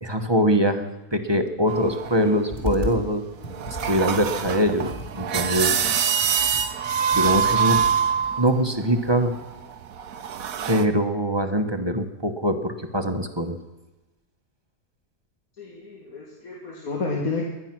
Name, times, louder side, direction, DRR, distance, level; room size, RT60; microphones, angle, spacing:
voice 1, 0.0-3.2 3.7-5.8 7.1-7.8 8.4-9.3 10.7-13.6, equal, 20° right, 6 dB, 1.1 m, -23 dB
sound 1, 1.7-2.7 3.3-10.9, right 7 dB, 70° right, 1.3 m, -25 dB
Computer keyboard, 2.5-3.0 3.4-8.3, left 1 dB, 30° left, 3.5 m, -36 dB
voice 2, 15.6-17.4, left 3 dB, 70° left, -1 dB, 2.4 m, -30 dB
22.5 x 10.0 x 6.1 m, 1.1 s
omnidirectional pair, 1.6 m